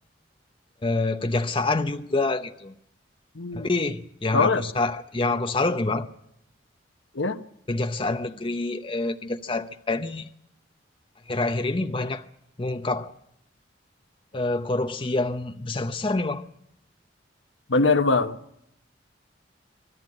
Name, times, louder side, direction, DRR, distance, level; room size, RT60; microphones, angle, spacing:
voice 1, 0.8-2.7 3.5-6.1 7.7-10.3 11.3-12.3 12.6-13.1 14.3-16.4, left 2 dB, 30° left, 0.7 m, -27 dB
voice 2, 3.3-3.7 4.3-4.6 7.1-7.4 17.7-18.4, left 3 dB, 75° left, 1.1 m, -22 dB
24.5 x 12.5 x 9.8 m
head